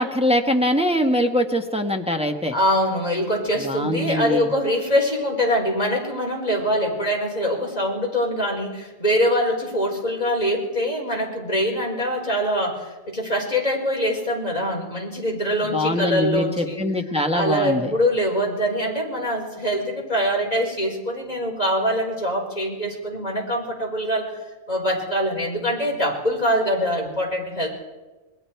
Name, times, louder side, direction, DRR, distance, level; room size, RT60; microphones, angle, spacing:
voice 1, 0.0-2.5 3.6-4.5 15.7-17.9, equal, 5° right, 3 dB, 1.3 m, -22 dB
voice 2, 2.5-16.8 17.3-24.3 24.7-27.7, equal, 35° left, -1 dB, 4.8 m, -23 dB
26.5 x 21.5 x 4.6 m, 1.2 s
omnidirectional pair, 1.2 m